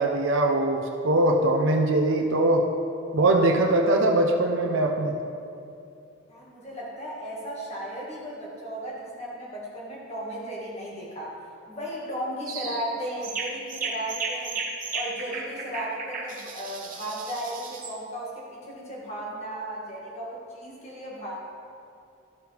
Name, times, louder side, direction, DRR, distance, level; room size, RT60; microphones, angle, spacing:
voice 1, 0.0-2.6 3.1-5.1, right 2 dB, 70° right, 2 dB, 0.7 m, -22 dB
voice 2, 6.3-11.3 11.7-14.6 14.9-21.3, right 1 dB, 30° left, -5 dB, 1.7 m, -35 dB
sound 1, 12.5-12.8 13.2-18.0, right 4 dB, 40° right, 1.0 m, -34 dB
12.0 x 7.9 x 3.4 m, 2.5 s
head